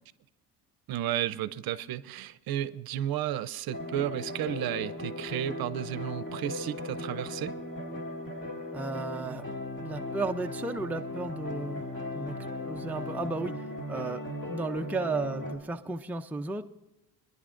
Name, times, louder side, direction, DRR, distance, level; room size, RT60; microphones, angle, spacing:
voice 1, 0.9-7.5, right 11 dB, 60° right, 16 dB, 0.7 m, -33 dB
sound 1, 3.7-15.6, left 2 dB, 30° left, 2.2 m, -38 dB
voice 2, 8.7-9.5 9.8-11.8 12.1-12.4 12.7-14.2 14.5-16.6, right 3 dB, 5° right, 4 dB, 0.5 m, -34 dB
25.5 x 10.5 x 2.5 m, 0.97 s
cardioid pair, 110°, 41 cm